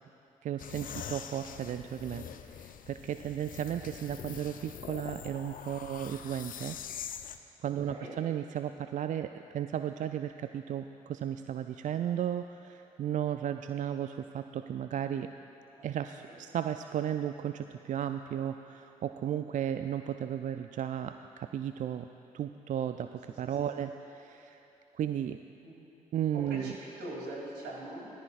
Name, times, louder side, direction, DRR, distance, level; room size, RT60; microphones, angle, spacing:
voice 1, 0.4-2.3 2.5-6.8 7.6-15.3 15.8-22.1 22.3-23.1 23.4-24.6 25.0-25.4 26.1-26.7, right 10 dB, 45° right, 9 dB, 0.4 m, -34 dB
sound 1, 0.6-7.4, left 8 dB, 55° left, 0.6 m, -44 dB
voice 2, 23.4-23.8 25.6-25.7 26.3-28.1, right 1 dB, 70° right, -4 dB, 3.0 m, -42 dB
18.0 x 14.0 x 2.5 m, 2.9 s
hypercardioid pair, 40°, 17 cm